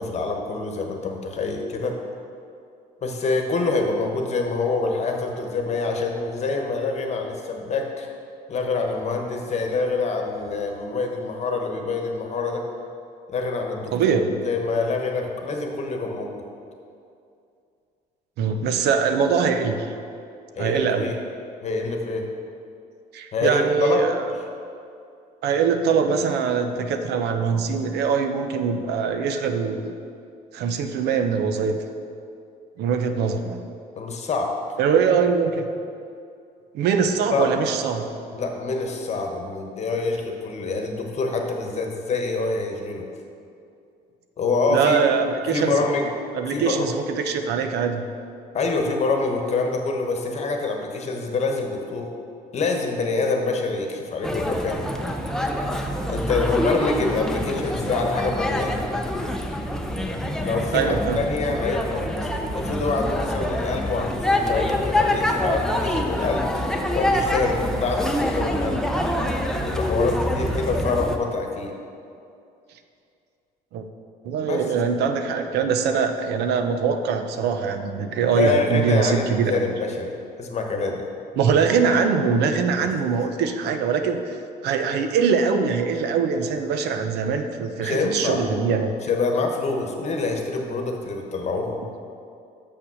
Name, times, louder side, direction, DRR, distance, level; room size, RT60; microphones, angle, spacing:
voice 1, 0.0-2.0 3.0-8.1 8.5-12.6 13.3-14.1 14.4-16.4 20.6-21.2 21.6-22.3 23.3-24.1 33.9-34.6 37.3-37.5 38.3-43.0 44.4-45.0 45.5-46.1 46.5-46.9 48.5-52.1 52.5-54.8 56.1-58.8 60.4-62.3 62.5-66.6 66.9-68.8 69.7-71.7 74.5-74.7 78.3-81.1 82.8-82.9 87.8-88.4 89.1-91.7, left 3 dB, 40° left, 3 dB, 1.1 m, -26 dB
voice 2, 13.9-14.3 18.4-19.9 20.6-21.1 23.1-24.2 25.4-29.9 30.5-31.7 32.8-33.6 34.8-35.7 36.7-38.1 44.7-45.7 46.3-48.1 60.7-61.2 73.7-73.8 74.2-79.7 81.4-84.4 84.6-88.9, right 6 dB, 75° right, 7 dB, 0.7 m, -22 dB
sound 1, 54.2-71.2, left 1 dB, 5° left, 0.6 m, -26 dB
6.6 x 5.9 x 6.2 m, 2.5 s
cardioid pair, 110°, 17 cm